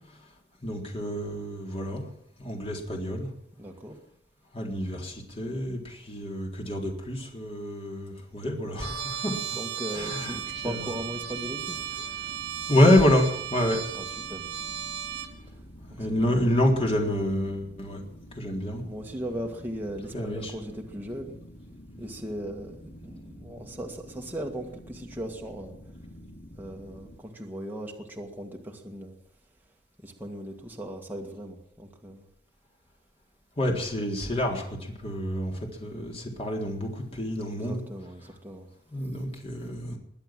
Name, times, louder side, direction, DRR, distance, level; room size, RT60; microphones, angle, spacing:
voice 1, 0.6-2.0 2.4-3.3 4.5-9.4 9.9-10.9 11.9-12.1 12.7-13.8 16.0-18.0 18.3-18.8 20.1-20.6 33.6-37.8 38.9-40.0, left 1 dB, 35° left, 1 dB, 3.9 m, -27 dB
voice 2, 3.6-4.0 9.5-11.8 13.9-14.4 15.9-16.4 18.8-21.4 22.0-25.8 26.6-29.2 30.0-32.3 37.5-38.7, equal, 10° right, 0 dB, 1.9 m, -38 dB
Trumpet, 8.8-15.3, right 8 dB, 80° right, 2.3 m, -35 dB
sound 1, 9.9-27.2, equal, 85° left, 3.5 m, -48 dB
22.0 x 8.3 x 7.7 m, 0.72 s
head